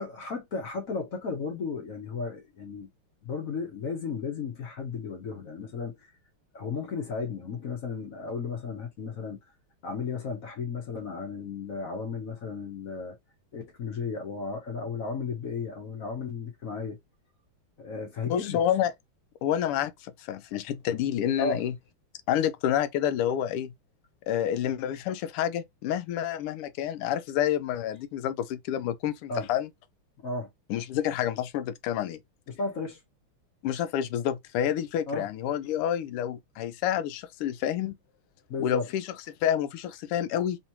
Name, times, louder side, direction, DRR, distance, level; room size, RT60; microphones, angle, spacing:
voice 1, 0.0-2.9 3.2-6.1 6.5-9.4 9.8-13.2 13.5-17.0 17.8-18.6 21.4-21.7 29.3-29.5 30.2-30.5 32.5-33.0 35.1-35.3 38.5-38.9, left 4 dB, 50° left, 1.1 m, -34 dB
voice 2, 18.3-18.9 19.4-21.7 22.3-23.7 24.3-29.7 30.7-32.2 33.6-37.9 38.6-39.1 39.4-40.6, left 10 dB, 85° left, 1.5 m, -28 dB
3.6 x 3.1 x 2.8 m
omnidirectional pair, 2.4 m